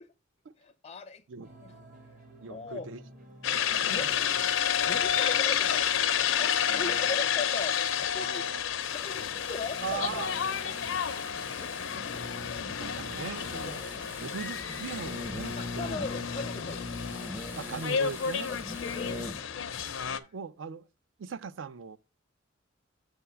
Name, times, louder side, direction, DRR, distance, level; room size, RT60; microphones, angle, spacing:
voice 1, 0.6-1.2 1.6-1.7 2.5-2.9 3.8-4.2 4.9-6.0 6.4-8.5 8.9-10.3 11.6-12.0 13.6-13.8 15.6-17.3 18.5-19.3, left 3 dB, 30° left, 0.4 m, -39 dB
sound 1, 1.4-6.6, right 1 dB, 45° right, 1.1 m, -53 dB
voice 2, 2.4-3.0 3.5-4.2 4.9-5.4 6.7-7.2 8.2-9.0 9.8-10.4 10.6-11.3 11.9-12.0 12.8-13.9 14.2-16.0 17.6-18.5 19.8-20.8 21.2-22.0, right 5 dB, 70° right, 0.4 m, -40 dB
sound 2, 3.4-20.2, left 8 dB, 90° left, 0.6 m, -30 dB
sound 3, 8.8-19.5 19.8-19.9, left 2 dB, 10° right, 0.6 m, -42 dB
7.0 x 3.5 x 5.5 m
head